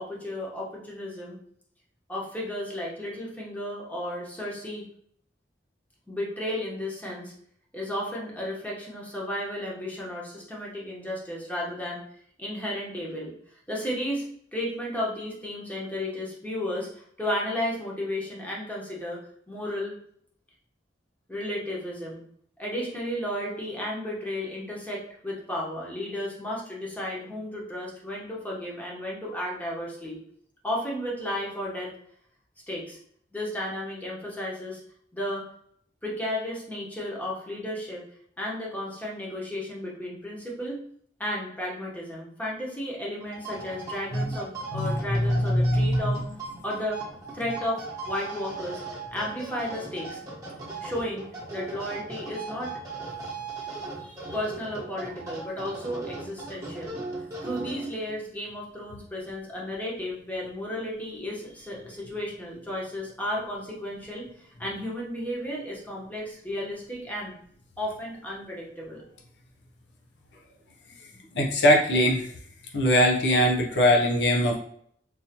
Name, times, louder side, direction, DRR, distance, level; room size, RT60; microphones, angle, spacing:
voice 1, 0.0-1.4 2.1-4.8 6.1-7.3 7.7-13.3 13.7-19.2 19.5-19.9 21.3-22.2 22.6-30.2 30.6-31.9 32.7-33.0 33.3-34.8 35.1-35.4 36.0-38.0 38.4-40.8 41.2-46.2 46.6-47.0 47.3-48.8 49.1-50.2 50.8-51.3 51.5-52.8 54.0-57.0 57.4-67.3 67.8-69.0, left 1 dB, 10° left, -4 dB, 1.0 m, -33 dB
sound 1, 43.2-58.2, right 3 dB, 20° right, 1.0 m, -38 dB
voice 2, 44.7-46.1 71.3-72.3 72.7-74.6, equal, 75° left, 0 dB, 0.6 m, -22 dB
3.8 x 2.7 x 2.8 m, 0.64 s
head